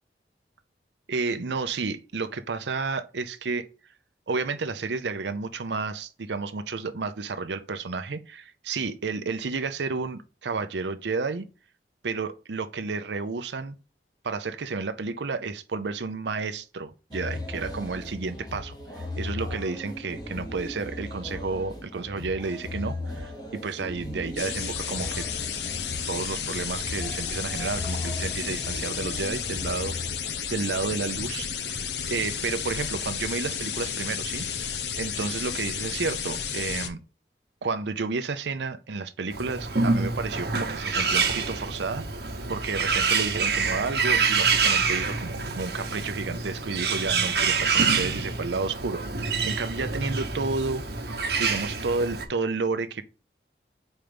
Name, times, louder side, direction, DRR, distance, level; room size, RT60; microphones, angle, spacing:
voice 1, 1.1-3.7 4.3-11.5 12.0-13.8 14.2-25.3 26.1-29.9 30.5-34.5 35.0-37.0 37.6-42.0 42.5-53.0, right 4 dB, 85° right, 0.6 m, -31 dB
sound 1, 17.1-30.3, left 2 dB, 25° left, 1.0 m, -37 dB
sound 2, 24.4-36.9, left 7 dB, 75° left, 0.8 m, -32 dB
Bird, 39.3-52.3, right 5 dB, 70° right, 1.2 m, -26 dB
5.2 x 4.5 x 5.2 m
head